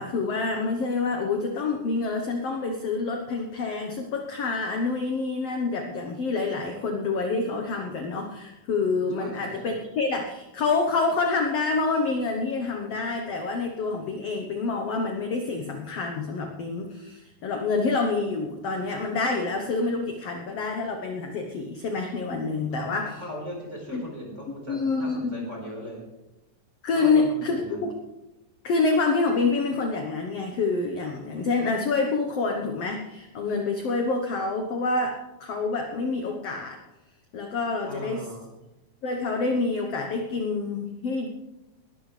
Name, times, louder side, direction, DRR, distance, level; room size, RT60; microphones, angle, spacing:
voice 1, 0.0-23.2 23.9-24.0 24.7-25.5 26.8-27.9 28.6-36.8 37.3-38.2 39.0-41.3, left 3 dB, 60° left, 3 dB, 1.7 m, -27 dB
voice 2, 9.1-9.8 22.7-26.0 26.9-27.9 37.9-38.5, equal, 20° right, -1 dB, 4.6 m, -39 dB
20.5 x 13.0 x 3.3 m, 0.99 s
omnidirectional pair, 4.0 m